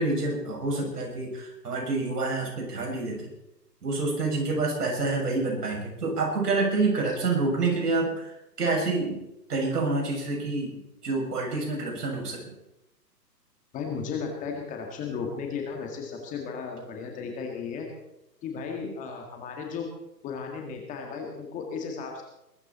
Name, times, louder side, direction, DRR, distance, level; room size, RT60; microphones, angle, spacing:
voice 1, 0.0-3.3 3.8-9.2 9.5-12.5, right 3 dB, 65° right, 0 dB, 7.2 m, -28 dB
voice 2, 13.7-17.9 18.4-19.9 20.2-22.2, left 5 dB, 15° left, 2 dB, 1.9 m, -35 dB
21.5 x 13.5 x 4.3 m, 0.89 s
hypercardioid pair, 145°, 50 cm